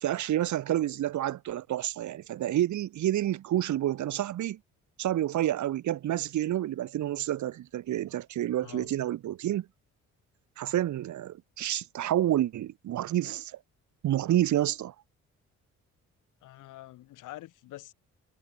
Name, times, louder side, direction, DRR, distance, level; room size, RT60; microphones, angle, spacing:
voice 1, 0.0-4.6 5.0-9.6 10.6-13.6 14.0-14.9, right 12 dB, 70° right, 1.6 m, -29 dB
voice 2, 16.4-17.9, left 16 dB, 90° left, 6.5 m, -46 dB
cardioid pair, 90°, 30 cm